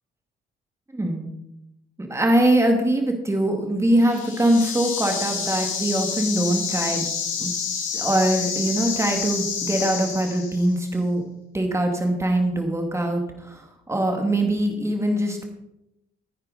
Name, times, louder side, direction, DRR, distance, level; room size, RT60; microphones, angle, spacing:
voice 1, 0.9-1.3 2.0-7.0 7.4-7.5 7.9-11.2 11.5-13.6 13.9-15.4, right 1 dB, 15° right, 3 dB, 2.3 m, -22 dB
sound 1, 4.0-10.7, left 6 dB, 85° left, 2.3 m, -29 dB
10.5 x 9.6 x 4.2 m, 0.85 s
cardioid pair, 90°, 20 cm